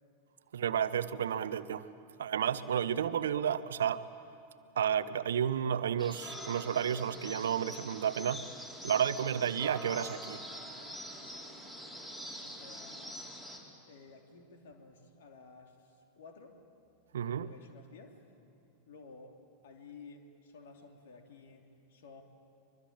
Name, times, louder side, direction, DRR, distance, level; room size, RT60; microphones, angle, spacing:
voice 1, 0.5-1.9 2.2-4.0 4.8-8.4 8.8-10.4 17.1-17.5, right 8 dB, 65° right, 15 dB, 0.8 m, -31 dB
sound 1, 6.0-13.6, equal, 10° left, 4.1 m, -45 dB
voice 2, 12.4-13.3 13.8-16.6 17.4-18.3 18.9-19.4 19.6-22.2, left 4 dB, 55° left, 3 dB, 3.0 m, -54 dB
24.5 x 23.0 x 8.9 m, 2.7 s
figure-of-eight pair, 90°, 0 cm